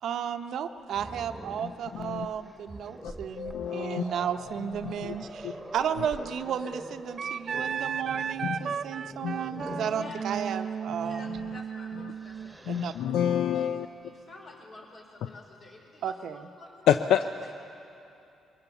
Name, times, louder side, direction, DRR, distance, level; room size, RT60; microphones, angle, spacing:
voice 1, 0.0-11.2 12.7-12.9 16.0-16.4, right 8 dB, 70° right, 9 dB, 0.8 m, -33 dB
Growling, 0.9-10.0 11.3-11.5 11.9-13.1, right 1 dB, 10° right, 1.6 m, -44 dB
voice 2, 3.0-4.0 4.8-5.1 5.4-5.5 8.4-8.8 9.2-9.4 9.7-9.8 12.7-13.9 16.9-17.2, left 9 dB, 80° left, 10 dB, 0.5 m, -27 dB
Wind instrument woodwind instrument, 7.2-12.5, right 7 dB, 50° right, 0.4 m, -34 dB
voice 3, 9.8-10.2 11.0-12.5 13.2-17.5, left 2 dB, 50° left, 0 dB, 4.9 m, -49 dB
22.5 x 17.5 x 7.0 m, 2.8 s
cardioid pair, 90°, 0 cm